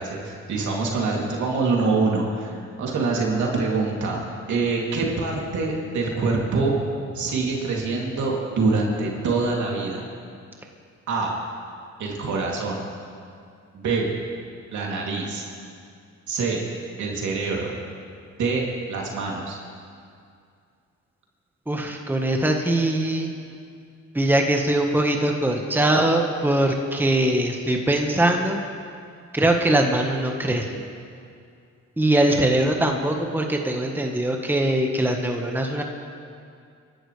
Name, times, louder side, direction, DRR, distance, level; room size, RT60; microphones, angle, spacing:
voice 1, 0.0-4.2 4.5-6.8 7.1-10.0 11.1-11.4 12.0-12.8 13.7-14.1 14.7-15.4 16.3-16.6 17.0-17.7 18.4-18.6 18.9-19.6, right 3 dB, 70° right, -2 dB, 2.9 m, -25 dB
voice 2, 21.7-23.3 24.1-28.6 29.3-30.8 32.0-35.8, right 1 dB, 5° right, 2 dB, 1.4 m, -22 dB
28.5 x 11.5 x 3.3 m, 2.3 s
cardioid pair, 90°, 30 cm